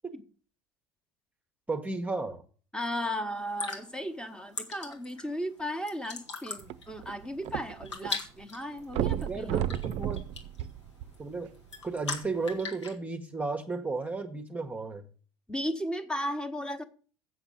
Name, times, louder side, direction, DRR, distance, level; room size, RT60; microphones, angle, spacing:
voice 1, 1.7-2.4 9.3-10.2 11.2-11.5 11.8-15.1, right 3 dB, 10° right, 1.1 m, -34 dB
voice 2, 2.7-9.6 15.5-16.8, equal, 5° left, 1.2 m, -35 dB
sound 1, 3.4-12.9, left 4 dB, 80° left, 1.7 m, -41 dB
sound 2, 6.6-8.1 8.4-8.5 8.9-11.5 12.2-12.3, right 12 dB, 45° right, 0.6 m, -33 dB
8.0 x 6.4 x 7.5 m
figure-of-eight pair, 70°, 15 cm